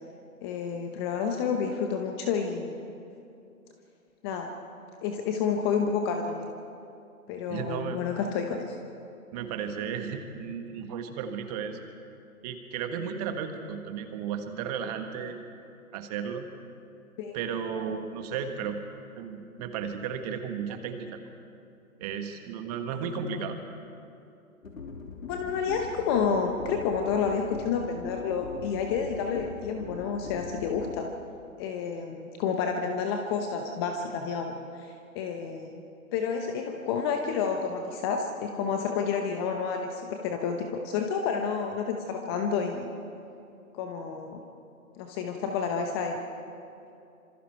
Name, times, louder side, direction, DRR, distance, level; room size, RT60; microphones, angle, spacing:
voice 1, 0.4-2.7 4.2-4.5 5.0-6.5 7.3-8.7 17.2-17.4 23.2-23.4 25.2-31.1 31.6-34.9 35.1-35.8 36.1-42.9 43.7-44.4 45.0-46.2, left 6 dB, 15° left, 4 dB, 0.9 m, -30 dB
voice 2, 7.5-8.0 9.3-11.8 12.4-15.4 15.9-16.4 17.3-18.8 19.2-21.2 22.0-23.6, right 7 dB, 25° right, 6 dB, 1.6 m, -34 dB
sound 1, 24.6-31.0, left 4 dB, 65° left, 3.3 m, -42 dB
26.0 x 25.0 x 4.6 m, 2.6 s
figure-of-eight pair, 135°, 44 cm